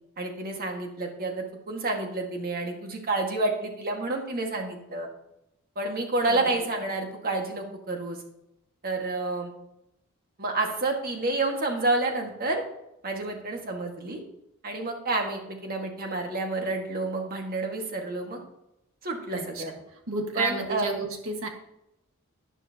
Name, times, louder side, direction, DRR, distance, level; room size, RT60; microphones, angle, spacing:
voice 1, 0.2-5.1 5.7-8.2 8.8-9.5 10.4-12.6 13.0-14.2 14.6-18.4 19.0-19.7 20.3-20.9, right 2 dB, 45° right, 2 dB, 1.7 m, -29 dB
voice 2, 6.3-6.7 19.3-19.6 20.1-21.5, right 3 dB, 70° right, 4 dB, 1.6 m, -31 dB
11.5 x 10.0 x 2.9 m, 0.85 s
head